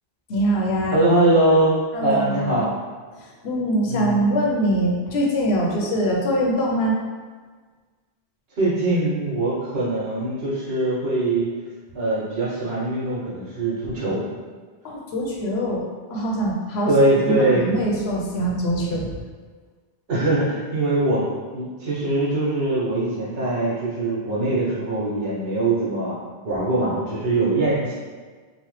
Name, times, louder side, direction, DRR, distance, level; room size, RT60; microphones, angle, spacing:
voice 1, 0.3-1.0 1.9-2.7 3.2-7.0 14.8-15.8 16.1-16.9 17.3-19.1, right 1 dB, 70° left, -2 dB, 0.8 m, -23 dB
voice 2, 0.9-1.7 2.0-2.7 3.9-4.2 8.6-11.5 11.9-14.2 16.9-17.7 20.1-21.3 21.5-26.1 26.4-27.9, right 2 dB, 65° right, -6 dB, 1.1 m, -22 dB
3.0 x 2.0 x 3.1 m, 1.5 s
omnidirectional pair, 1.1 m